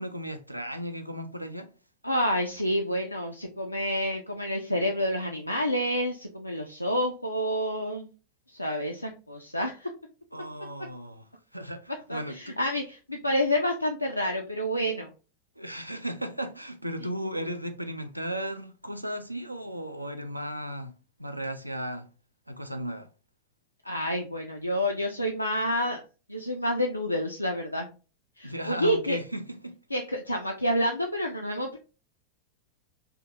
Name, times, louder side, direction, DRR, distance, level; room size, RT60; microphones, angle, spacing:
voice 1, 0.0-1.7 10.3-11.2 11.5-12.6 15.6-20.9 21.2-22.1 22.5-23.1 28.4-29.7, equal, 90° right, 0.4 m, -35 dB
voice 2, 2.0-8.1 8.5-9.9 12.1-15.1 23.8-26.0 26.3-27.9 28.4-29.2 29.9-31.8, equal, 90° left, 0.3 m, -28 dB
3.5 x 2.4 x 2.7 m
figure-of-eight pair, 90°, 0 cm